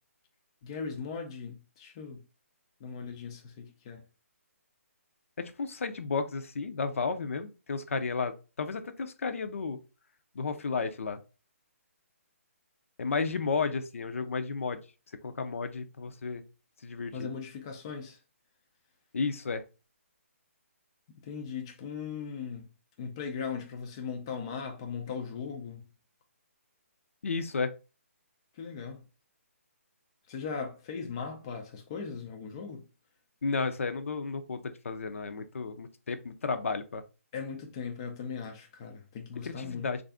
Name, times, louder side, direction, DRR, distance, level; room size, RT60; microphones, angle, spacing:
voice 1, 0.6-2.2 2.8-4.0 17.1-18.2 21.2-22.7 23.0-25.9 28.5-29.0 30.3-32.8 37.3-39.9, left 6 dB, 20° left, 0.4 m, -38 dB
voice 2, 5.4-9.8 10.3-11.2 13.0-14.8 15.2-16.4 16.8-17.3 19.1-19.6 27.2-27.7 33.4-37.0 39.4-40.0, left 4 dB, 65° left, 0.5 m, -33 dB
3.3 x 2.5 x 3.4 m
hypercardioid pair, 165°, 8 cm